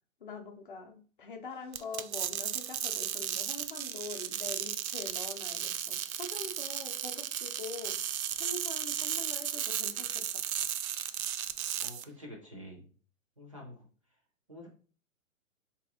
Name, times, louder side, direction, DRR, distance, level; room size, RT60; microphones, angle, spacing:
voice 1, 0.2-10.5, left 4 dB, 40° left, 4 dB, 0.6 m, -44 dB
sound 1, 1.7-12.0, right 10 dB, 85° right, 0.6 m, -35 dB
voice 2, 11.8-12.9 13.4-13.9 14.5-14.7, left 1 dB, 25° right, 0 dB, 0.4 m, -47 dB
4.1 x 2.9 x 3.4 m, 0.40 s
hypercardioid pair, 175°, 41 cm